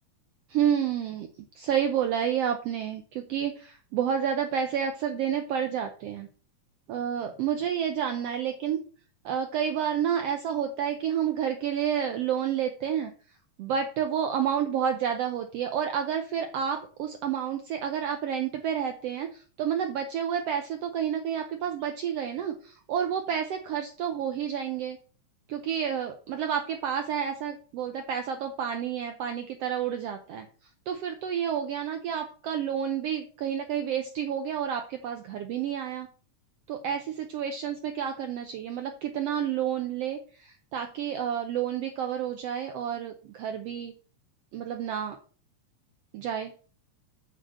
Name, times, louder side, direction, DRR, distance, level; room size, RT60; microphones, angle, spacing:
voice 1, 0.5-1.3 1.6-6.3 6.9-8.8 9.2-13.1 13.6-25.0 25.5-30.4 30.9-36.1 36.7-43.9 44.5-45.2 46.1-46.5, right 8 dB, 70° right, 6 dB, 1.5 m, -30 dB
7.6 x 4.3 x 6.3 m, 0.39 s
omnidirectional pair, 3.5 m